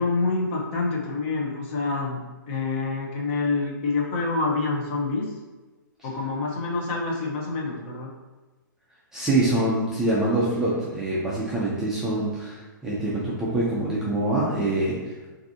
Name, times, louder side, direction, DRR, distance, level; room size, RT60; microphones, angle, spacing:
voice 1, 0.0-5.3 6.0-8.1, left 3 dB, 35° left, -2 dB, 0.9 m, -27 dB
voice 2, 9.1-15.1, right 2 dB, 5° right, -7 dB, 0.5 m, -25 dB
5.8 x 2.7 x 2.7 m, 1.2 s
hypercardioid pair, 165°, 11 cm